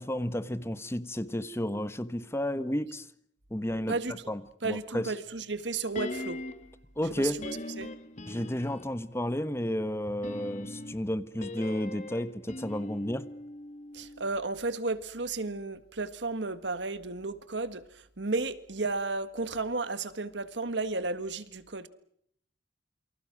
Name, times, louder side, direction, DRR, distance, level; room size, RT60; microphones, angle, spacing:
voice 1, 0.0-3.1 3.5-4.0 4.3-5.1 7.0-7.4 8.3-13.3, left 1 dB, 15° left, 1.1 m, -32 dB
voice 2, 4.6-6.4 7.1-7.4 7.8-7.9 13.9-21.9, right 3 dB, 70° right, 1.7 m, -33 dB
sound 1, 6.0-6.8 7.4-9.0 10.1-14.3 14.6-14.7, left 2 dB, 40° left, 1.6 m, -41 dB
28.5 x 24.5 x 6.1 m
head